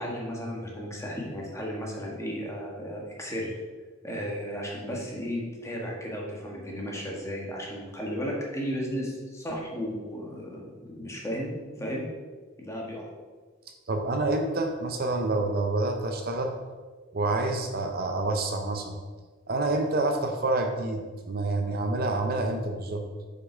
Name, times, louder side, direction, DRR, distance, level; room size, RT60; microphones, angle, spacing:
voice 1, 0.0-3.6 4.0-11.5 11.8-12.1 12.6-13.1, equal, 15° left, -2 dB, 1.5 m, -34 dB
voice 2, 13.9-16.5 17.1-19.0 19.5-23.0, right 2 dB, 50° right, 4 dB, 0.7 m, -28 dB
6.7 x 5.8 x 4.5 m, 1.4 s
head